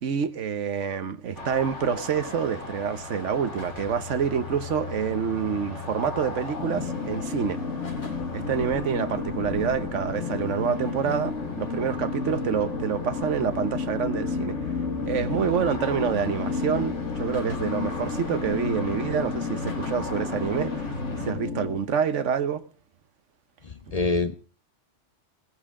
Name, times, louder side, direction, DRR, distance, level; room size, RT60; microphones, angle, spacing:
voice 1, 0.0-7.6 8.3-14.6 15.0-20.9 21.3-22.6, right 7 dB, 80° right, 1.3 m, -27 dB
sound 1, 1.4-21.3, left 3 dB, 70° left, 3.3 m, -40 dB
sound 2, 6.6-21.8, left 4 dB, 90° left, 2.1 m, -31 dB
voice 2, 23.6-24.4, left 3 dB, 40° left, 0.7 m, -26 dB
17.5 x 14.5 x 3.7 m
omnidirectional pair, 1.2 m